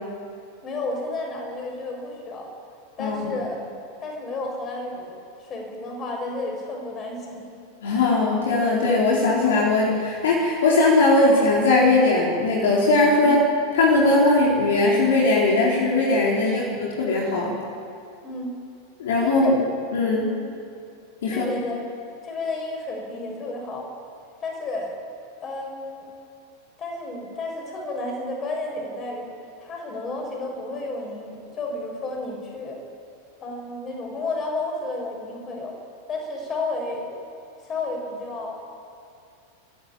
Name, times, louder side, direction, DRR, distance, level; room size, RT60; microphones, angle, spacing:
voice 1, 0.6-2.5 3.0-3.6 4.0-7.4 16.4-16.6 18.2-18.5 19.2-19.6 20.2-20.3 21.3-21.9 22.2-23.9 24.4-24.9 25.4-26.1 26.8-29.3 29.6-32.8 33.4-35.7 36.1-37.1 37.6-38.5, left 2 dB, 25° left, 1 dB, 6.5 m, -32 dB
voice 2, 3.0-3.3 7.8-13.4 13.7-17.5 19.0-19.5 19.9-20.3 21.2-21.5, left 2 dB, 60° left, -3 dB, 4.1 m, -19 dB
27.0 x 14.5 x 9.0 m, 2.5 s
figure-of-eight pair, 90°, 0 cm